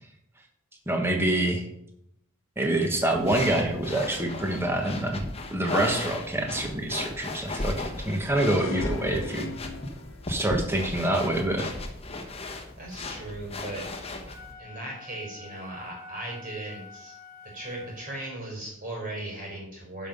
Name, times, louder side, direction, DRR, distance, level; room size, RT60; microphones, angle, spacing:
voice 1, 0.9-1.6 2.6-5.2 5.5-9.5 10.3-11.7, right 1 dB, 10° right, 2 dB, 1.2 m, -26 dB
sound 1, 3.1-14.5, left 2 dB, 30° left, 1.1 m, -36 dB
sound 2, 8.5-10.5, left 2 dB, 60° left, 0.8 m, -38 dB
voice 2, 12.8-13.9 14.6-17.2 17.4-20.1, right 1 dB, 40° right, -2 dB, 4.2 m, -37 dB
Wind instrument woodwind instrument, 14.2-18.5, left 2 dB, 70° right, 2.4 m, -47 dB
11.0 x 5.6 x 5.3 m, 0.77 s
head